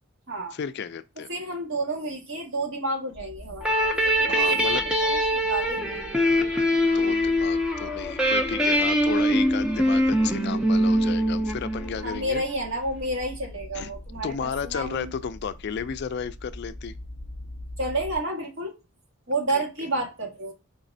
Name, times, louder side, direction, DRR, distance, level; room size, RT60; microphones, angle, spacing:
voice 1, 0.5-1.3 4.1-4.8 6.8-12.4 13.7-13.9 14.2-16.9 19.5-19.6, left 6 dB, 55° left, 0.3 m, -33 dB
voice 2, 1.3-4.7 5.0-6.1 12.0-15.1 17.8-18.7 19.3-20.5, right 2 dB, 65° right, 1.5 m, -30 dB
sound 1, 3.1-18.2, left 1 dB, 85° right, 1.7 m, -43 dB
sound 2, 3.6-12.1, equal, 5° right, 0.5 m, -23 dB
4.9 x 3.1 x 2.6 m
head